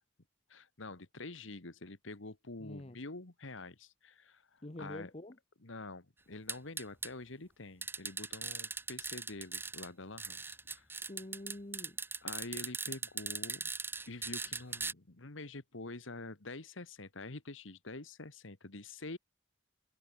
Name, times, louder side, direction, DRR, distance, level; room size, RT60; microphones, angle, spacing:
voice 1, 0.5-5.1 5.6-10.9 12.2-13.7 14.1-19.2, left 2 dB, 75° left, 1.8 m, -47 dB
voice 2, 2.6-3.0 4.6-5.4 10.9-12.0, left 1 dB, 30° left, 1.0 m, -46 dB
sound 1, 6.5-7.1 7.8-9.9 10.2-14.9, right 4 dB, 10° right, 1.1 m, -39 dB
head